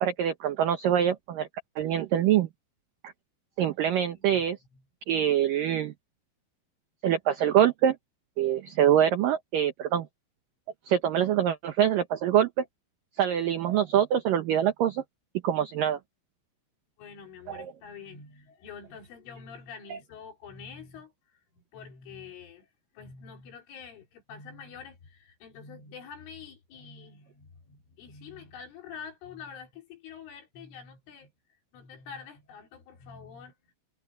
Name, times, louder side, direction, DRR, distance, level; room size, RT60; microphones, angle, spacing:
voice 1, 0.0-1.5 1.8-2.5 3.6-4.6 5.1-5.9 7.0-8.0 8.4-10.1 10.9-12.7 13.2-15.0 15.4-16.0 17.5-17.7 19.9-20.0, right 10 dB, 80° right, 1.9 m, -24 dB
voice 2, 4.1-4.4 17.0-21.1 21.5-22.7 22.9-31.3 31.7-33.5, left 6 dB, 85° left, 6.7 m, -46 dB
omnidirectional pair, 5.5 m